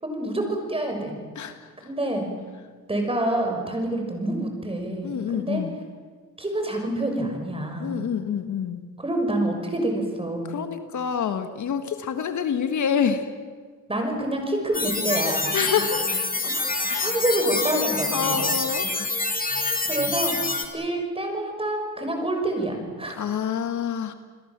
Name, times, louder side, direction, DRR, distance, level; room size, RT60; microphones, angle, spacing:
voice 1, 0.0-1.2 1.8-2.3 2.9-5.6 6.4-8.0 9.0-10.6 13.9-15.5 16.4-18.4 19.5-23.2, right 1 dB, 15° right, 4 dB, 6.6 m, -27 dB
voice 2, 1.3-1.7 5.0-5.8 7.8-8.8 10.5-13.3 15.5-16.2 16.8-17.1 18.1-19.2 23.2-24.1, left 7 dB, 60° left, 8 dB, 1.7 m, -27 dB
sound 1, 14.7-20.7, left 3 dB, 25° left, 3.1 m, -26 dB
29.5 x 21.0 x 7.5 m, 1.5 s
cardioid pair, 95°, 33 cm